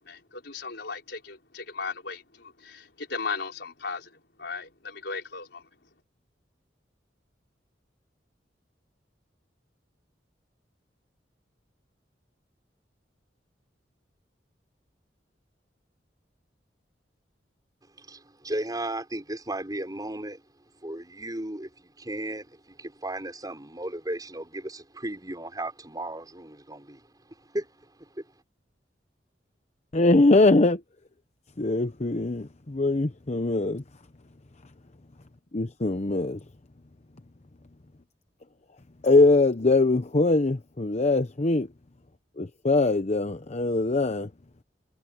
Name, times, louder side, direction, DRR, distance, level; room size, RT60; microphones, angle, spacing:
voice 1, 0.0-5.7, left 4 dB, 70° left, 5.4 m, -37 dB
voice 2, 18.0-20.4 20.8-27.1 27.4-28.2, right 1 dB, 20° right, 6.2 m, -35 dB
voice 3, 29.9-30.8 31.6-32.4 32.7-33.8 35.5-36.4 39.0-41.7 42.6-44.3, left 2 dB, 40° left, 0.8 m, -22 dB
head